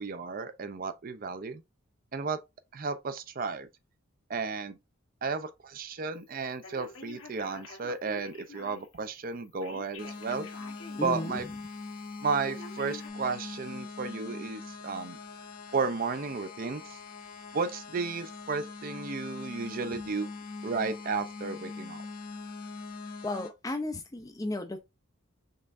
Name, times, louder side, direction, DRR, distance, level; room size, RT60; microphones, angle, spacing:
voice 1, 0.0-1.6 2.1-2.4 2.7-3.7 4.3-4.8 5.2-10.5 11.0-11.4 12.2-15.2 15.7-17.0 17.5-20.3 20.6-22.0, right 4 dB, 40° right, 0.5 m, -33 dB
Telephone, 6.6-9.0 9.6-11.1 11.5-11.6 12.4-13.1, left 3 dB, 65° left, 1.0 m, -47 dB
sound 1, 10.0-23.5, left 4 dB, 40° left, 0.8 m, -42 dB
voice 2, 11.0-11.4 23.2-24.8, left 2 dB, 15° left, 0.4 m, -34 dB
5.4 x 3.5 x 2.5 m
head